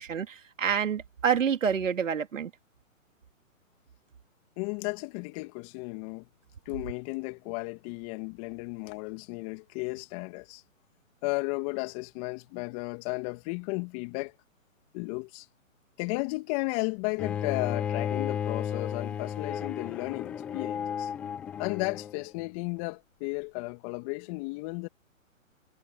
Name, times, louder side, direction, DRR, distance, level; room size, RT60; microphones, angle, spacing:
voice 1, 0.0-2.5, right 7 dB, 65° right, 3.1 m, -28 dB
voice 2, 4.6-6.3 6.7-10.6 11.2-14.3 14.9-15.5 16.0-21.1 21.6-24.9, left 28 dB, 25° left, 2.4 m, -34 dB
Bowed string instrument, 17.2-22.2, left 8 dB, 5° left, 0.5 m, -33 dB
hypercardioid pair, 140°, 41 cm